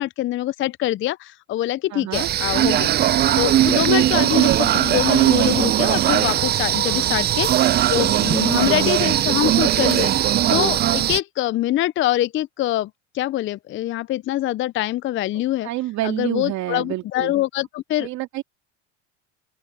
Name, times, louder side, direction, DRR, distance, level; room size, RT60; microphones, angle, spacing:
voice 1, 0.0-2.9 3.4-10.1 10.5-12.9 13.1-15.7 16.0-18.1, left 14 dB, 35° left, 0.5 m, -24 dB
voice 2, 1.9-2.3 6.8-7.2 15.6-17.3 18.0-18.4, right 15 dB, 55° right, 2.5 m, -28 dB
sound 1, 2.1-11.2, right 12 dB, 30° right, 0.5 m, -19 dB
open air
supercardioid pair, 95°, 34 cm